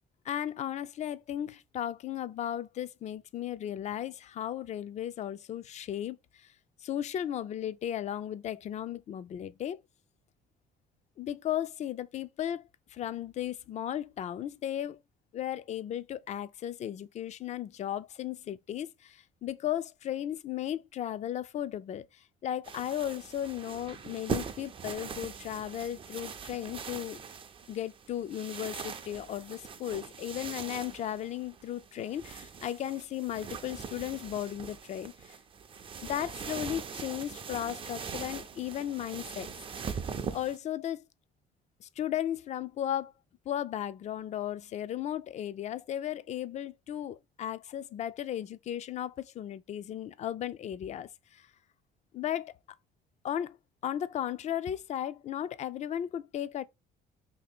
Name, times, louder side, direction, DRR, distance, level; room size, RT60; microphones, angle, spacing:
voice 1, 0.3-6.5 6.8-9.8 11.2-15.0 15.3-27.2 27.7-35.4 36.0-40.0 40.3-41.0 41.8-43.1 43.5-51.5 52.1-52.5 53.2-53.6 53.8-56.6, left 11 dB, 45° left, 0.4 m, -35 dB
sound 1, 22.6-40.6, right 6 dB, 30° right, 0.4 m, -41 dB
2.9 x 2.8 x 4.2 m
cardioid pair, 110°, 17 cm